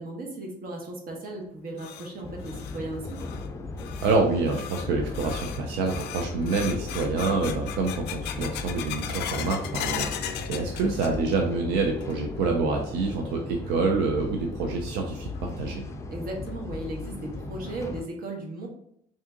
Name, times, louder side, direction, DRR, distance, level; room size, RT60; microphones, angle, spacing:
voice 1, 0.0-3.2 16.1-18.7, right 2 dB, 60° right, 1 dB, 1.2 m, -36 dB
sound 1, 1.4-11.5 11.8-12.4 12.8-12.9 13.6-13.7 15.3-15.4 15.9-16.0 16.5-16.6 17.0-17.1 17.7-18.0, left 9 dB, 80° left, 0.4 m, -38 dB
sound 2, 2.2-18.0, left 3 dB, 15° left, 0.4 m, -37 dB
voice 2, 4.0-15.8, right 3 dB, 90° right, 2 dB, 0.5 m, -27 dB
3.6 x 2.7 x 3.7 m, 0.71 s
cardioid pair, 110°, 17 cm